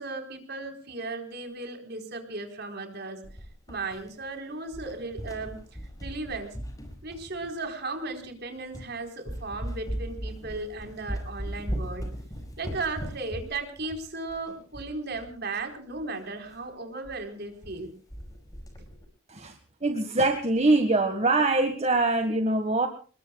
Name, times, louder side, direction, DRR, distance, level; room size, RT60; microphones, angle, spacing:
voice 1, 0.0-3.2 3.7-5.6 6.0-6.6 7.0-12.1 12.6-17.9, right 3 dB, 55° right, 5 dB, 4.3 m, -36 dB
sound 1, 3.2-4.4 4.7-7.7 8.2-8.3 8.7-8.9 9.3-15.3 15.6-15.7 15.9-16.0 16.5-16.6 17.0-17.2 17.4-17.8 18.1-19.1, equal, 20° left, 5.4 m, -38 dB
voice 2, 19.8-22.9, right 2 dB, 35° right, 6 dB, 1.6 m, -23 dB
29.0 x 21.5 x 2.3 m, 0.40 s
head